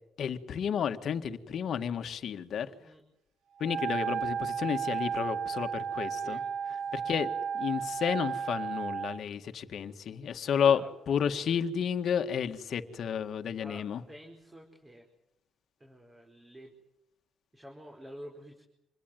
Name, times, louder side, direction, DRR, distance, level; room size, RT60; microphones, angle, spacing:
voice 1, 0.2-2.7 3.6-6.4 6.9-10.8 11.1-14.0, left 8 dB, 65° left, 7 dB, 1.9 m, -31 dB
voice 2, 2.6-3.0 6.2-7.1 10.4-10.9 13.6-15.1 15.8-16.8 17.5-18.6, equal, 15° right, 1 dB, 5.1 m, -50 dB
Wind instrument woodwind instrument, 3.6-9.2, right 7 dB, 85° right, 1.2 m, -33 dB
27.5 x 21.0 x 9.5 m, 0.85 s
cardioid pair, 90°, 0 cm